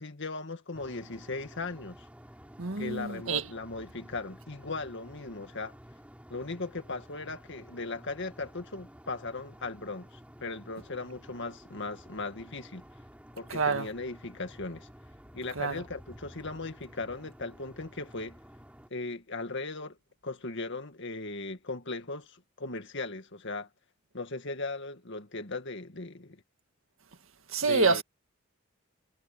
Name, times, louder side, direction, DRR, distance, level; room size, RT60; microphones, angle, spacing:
voice 1, 0.0-2.1 2.8-5.8 6.3-12.8 13.4-14.9 15.3-18.4 18.9-20.0 20.2-23.7 24.1-26.4 27.6-28.0, left 3 dB, 60° left, 2.1 m, -38 dB
sound 1, 0.7-18.9, equal, 5° right, 4.6 m, -52 dB
voice 2, 2.6-3.4 13.5-13.9 15.6-15.8 27.5-28.0, right 4 dB, 70° right, 2.0 m, -27 dB
head